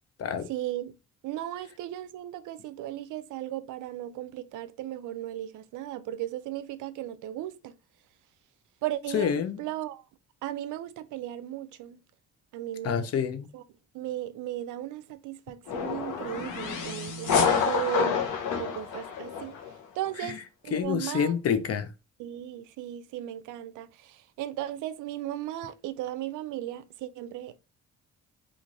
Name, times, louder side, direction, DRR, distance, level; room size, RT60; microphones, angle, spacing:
voice 1, 0.5-1.0 1.2-7.7 8.8-10.0 10.4-12.0 12.5-13.1 13.5-13.6 13.9-18.2 18.6-19.5 20.0-21.3 22.2-27.6, right 13 dB, 80° right, 0.5 m, -36 dB
voice 2, 9.1-9.6 12.8-13.5 20.2-20.4 20.7-21.9, left 7 dB, 55° left, 0.6 m, -28 dB
sound 1, 15.7-19.7, left 6 dB, 80° left, 0.9 m, -28 dB
3.1 x 2.5 x 3.8 m
cardioid pair, 90°, 30 cm